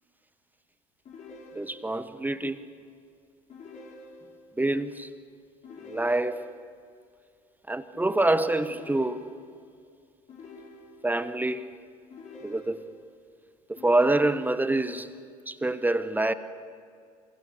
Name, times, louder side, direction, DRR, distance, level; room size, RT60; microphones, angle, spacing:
sound 1, 1.0-2.1 3.5-4.6 5.6-6.7 8.7-9.7 10.3-11.3 12.1-13.1 13.8-14.8, left 2 dB, 40° left, 7.2 m, -48 dB
voice 1, 1.5-2.6 4.6-5.1 5.8-6.5 7.7-9.3 11.0-11.7 12.4-12.8 13.7-15.1 15.5-16.3, right 2 dB, 10° right, 1.1 m, -26 dB
28.0 x 26.5 x 6.8 m
figure-of-eight pair, 60°, 18 cm